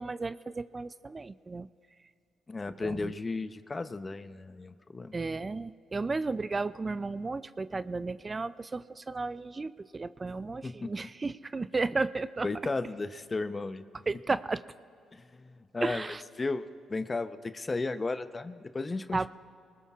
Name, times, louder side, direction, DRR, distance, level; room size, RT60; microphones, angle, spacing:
voice 1, 0.0-1.7 2.8-3.1 5.1-12.5 14.1-14.6 15.8-16.2 19.1-19.3, right 3 dB, 30° right, 15 dB, 0.4 m, -33 dB
voice 2, 2.5-5.2 10.6-10.9 12.4-13.8 15.1-19.3, left 3 dB, 30° left, 11 dB, 0.7 m, -35 dB
24.0 x 20.0 x 2.5 m, 2.4 s
supercardioid pair, 60°, 0 cm